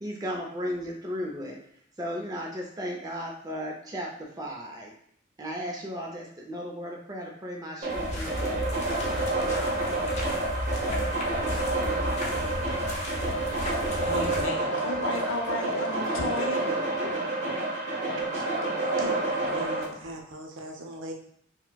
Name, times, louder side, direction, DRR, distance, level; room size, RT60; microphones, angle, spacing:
voice 1, 0.0-1.6 2.0-4.9 5.4-8.8, equal, 20° right, 0.5 m, -35 dB
sound 1, 7.8-19.8, right 2 dB, 35° right, 1.1 m, -29 dB
sound 2, 7.9-14.5, left 1 dB, 35° left, 0.5 m, -34 dB
voice 2, 13.6-17.1, left 2 dB, 80° left, 0.6 m, -34 dB
voice 3, 18.1-18.4 19.0-21.1, right 1 dB, 75° right, 0.6 m, -39 dB
4.1 x 2.1 x 2.2 m
head